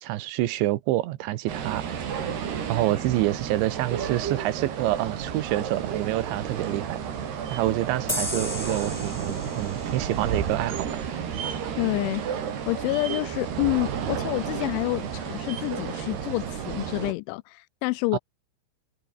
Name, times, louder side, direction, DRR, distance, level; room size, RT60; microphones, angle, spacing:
voice 1, 0.0-1.8 2.7-7.0 7.5-10.9 18.1-18.2, right 16 dB, 80° right, 3.3 m, -27 dB
sound 1, 1.5-17.1, right 8 dB, 60° right, 5.3 m, -32 dB
sound 2, 8.1-11.4, left 1 dB, 20° left, 0.5 m, -35 dB
voice 2, 11.8-12.2 12.7-18.2, left 23 dB, 85° left, 3.0 m, -28 dB
omnidirectional pair, 5.4 m